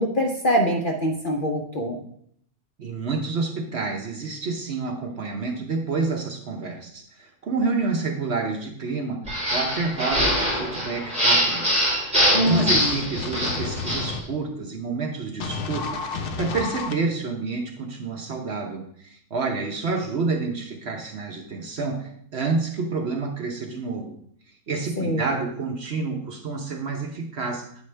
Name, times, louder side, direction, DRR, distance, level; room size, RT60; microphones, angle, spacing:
voice 1, 0.0-2.0 12.3-12.9 25.0-25.2, equal, 50° left, 0 dB, 0.6 m, -24 dB
voice 2, 2.8-9.3 9.5-11.7 12.1-24.2 24.7-27.8, right 4 dB, 50° right, 2 dB, 0.9 m, -29 dB
sound 1, 9.3-14.1, equal, 5° right, 2.2 m, -23 dB
sound 2, 12.5-14.2 15.4-16.9, left 4 dB, 80° left, 1.2 m, -31 dB
8.4 x 4.8 x 3.3 m, 0.67 s
omnidirectional pair, 1.6 m